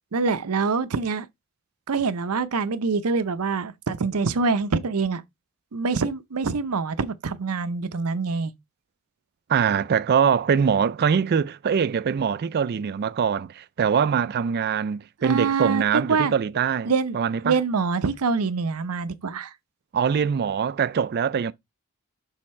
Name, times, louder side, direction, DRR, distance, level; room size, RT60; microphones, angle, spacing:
voice 1, 0.1-1.3 1.9-5.2 5.7-8.5 15.2-16.3 16.9-17.2 17.4-19.5, right 4 dB, 85° right, 0.6 m, -25 dB
voice 2, 9.5-17.6 19.9-21.5, right 7 dB, 45° right, 0.3 m, -23 dB
6.5 x 3.5 x 4.2 m
head